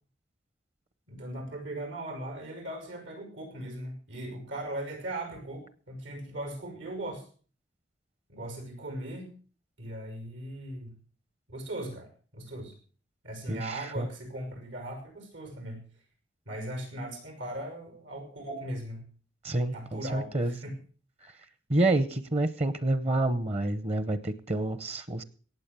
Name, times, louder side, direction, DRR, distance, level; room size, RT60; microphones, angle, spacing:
voice 1, 1.1-7.2 8.3-9.3 9.8-11.0 11.5-12.7 13.2-15.8 16.5-19.0 19.7-20.8, right 1 dB, 85° right, 5 dB, 6.1 m, -38 dB
voice 2, 13.5-14.1 19.4-20.6 21.7-25.2, right 2 dB, 35° right, 15 dB, 0.8 m, -28 dB
18.0 x 7.8 x 6.8 m, 0.41 s
head